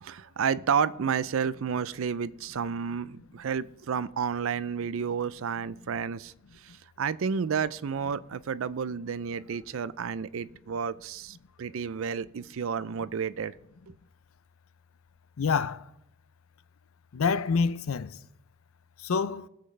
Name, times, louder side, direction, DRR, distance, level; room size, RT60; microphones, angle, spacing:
voice 1, 0.0-6.3 6.6-13.5 13.9-14.0, right 6 dB, 70° right, 0.4 m, -31 dB
voice 2, 15.4-15.8 17.1-18.2 19.0-19.5, left 5 dB, 80° left, 0.5 m, -27 dB
21.0 x 7.7 x 3.3 m
head